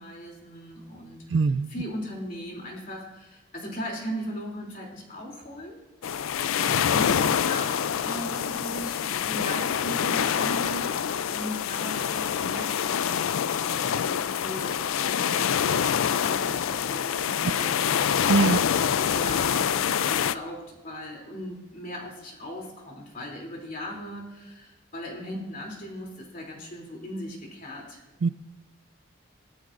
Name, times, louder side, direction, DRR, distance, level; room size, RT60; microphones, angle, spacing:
voice 1, 0.0-1.2 1.7-5.8 6.6-18.3 18.6-28.0, equal, 40° left, -1 dB, 2.9 m, -38 dB
voice 2, 1.3-1.7 18.3-18.6 28.2-28.3, right 4 dB, 60° right, 15 dB, 0.3 m, -22 dB
sound 1, 6.0-20.3, left 8 dB, 85° left, 0.4 m, -26 dB
19.0 x 12.0 x 2.5 m, 1.1 s
head